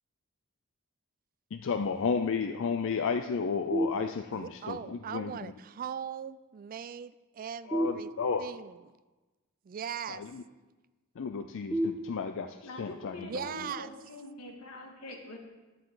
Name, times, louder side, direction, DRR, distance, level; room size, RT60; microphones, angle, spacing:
voice 1, 1.5-5.5 7.7-8.5 10.1-10.4 11.2-13.5, left 5 dB, 60° left, 7 dB, 0.4 m, -33 dB
sound 1, 3.7-4.7 7.7-8.7 11.7-12.7, equal, ahead, 1.2 m, -34 dB
voice 2, 4.3-8.1 8.4-8.8 9.7-10.2 13.2-13.9, right 8 dB, 40° right, 16 dB, 0.3 m, -39 dB
voice 3, 12.6-15.4, left 2 dB, 90° left, 1 dB, 2.0 m, -44 dB
11.5 x 9.6 x 3.9 m, 1.2 s
head